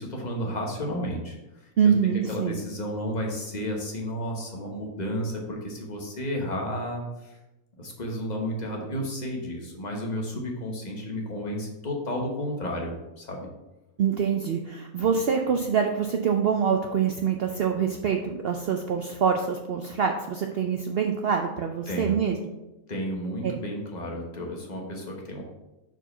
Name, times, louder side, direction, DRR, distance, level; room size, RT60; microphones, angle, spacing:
voice 1, 0.0-1.4 2.3-7.4 7.8-13.5 21.9-22.2 22.9-25.4, equal, 30° left, 0 dB, 1.1 m, -32 dB
voice 2, 1.8-2.6 14.0-22.4 23.4-23.6, right 7 dB, 85° right, 4 dB, 0.5 m, -25 dB
4.6 x 4.5 x 5.4 m, 0.99 s
omnidirectional pair, 1.6 m